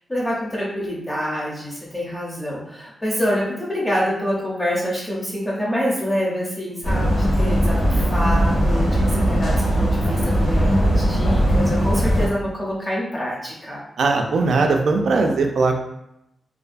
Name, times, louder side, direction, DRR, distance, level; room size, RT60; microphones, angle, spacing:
voice 1, 0.1-13.8, equal, 15° left, -6 dB, 0.7 m, -26 dB
sound 1, 6.8-12.3, equal, 60° left, 1.2 m, -19 dB
voice 2, 14.0-15.8, right 3 dB, 65° right, 3 dB, 0.3 m, -19 dB
2.4 x 2.2 x 2.5 m, 0.83 s
wide cardioid pair, 170°, 0 cm